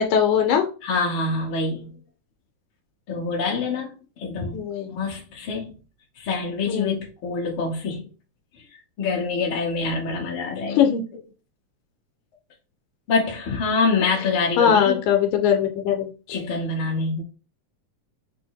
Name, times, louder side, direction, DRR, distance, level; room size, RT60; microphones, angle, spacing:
voice 1, 0.0-0.7 4.5-4.9 6.7-7.0 10.7-11.0 14.6-16.1, left 8 dB, 85° left, 2.0 m, -20 dB
voice 2, 0.8-1.9 3.1-3.9 4.2-4.6 4.9-5.7 6.2-8.1 9.0-10.9 13.1-15.0 16.3-17.2, left 4 dB, 60° left, 1.4 m, -25 dB
5.5 x 2.0 x 4.5 m
omnidirectional pair, 3.4 m